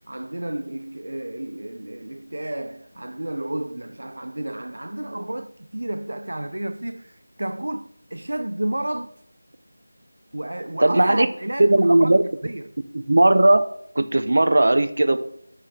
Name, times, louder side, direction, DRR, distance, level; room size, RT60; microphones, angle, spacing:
voice 1, 0.1-9.1 10.3-12.7, right 1 dB, 70° right, 0.5 m, -31 dB
voice 2, 10.8-11.3 11.6-12.3 12.9-13.7 13.9-15.2, right 1 dB, 50° right, 0.8 m, -17 dB
6.5 x 5.7 x 7.2 m
figure-of-eight pair, 180°, 0 cm